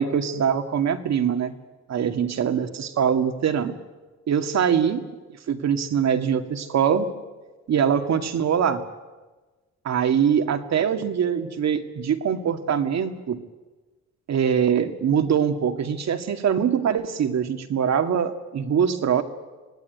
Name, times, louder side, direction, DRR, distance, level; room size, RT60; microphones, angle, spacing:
voice 1, 0.0-1.5 1.9-3.7 4.3-5.0 5.5-7.1 7.7-8.8 9.8-13.4 14.3-19.2, right 8 dB, 60° right, 7 dB, 2.3 m, -23 dB
26.0 x 18.5 x 9.4 m, 1.2 s
cardioid pair, 90°, 30 cm